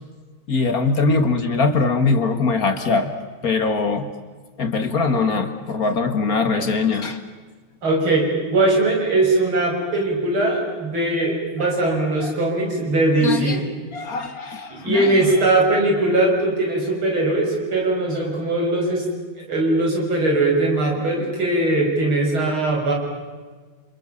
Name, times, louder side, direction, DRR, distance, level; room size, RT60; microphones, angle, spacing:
voice 1, 0.5-3.1 3.4-4.1 4.6-7.2 11.9-12.0 12.2-12.3 13.2-13.6 13.9-15.2, left 4 dB, 45° left, 8 dB, 2.3 m, -21 dB
voice 2, 7.8-13.7 14.7-19.0 19.4-22.9, right 2 dB, 80° right, 0 dB, 6.9 m, -20 dB
29.0 x 27.5 x 7.1 m, 1.4 s
omnidirectional pair, 2.3 m